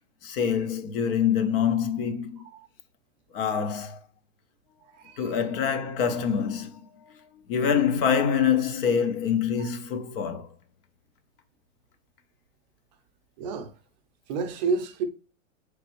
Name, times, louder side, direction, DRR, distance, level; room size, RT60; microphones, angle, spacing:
voice 1, 0.2-2.4 3.3-4.0 5.2-10.5, left 7 dB, 45° left, 0.6 m, -26 dB
voice 2, 5.0-5.4 13.4-13.7 14.3-15.0, right 4 dB, 35° right, 0.5 m, -29 dB
4.1 x 3.3 x 2.9 m
hypercardioid pair, 145°, 37 cm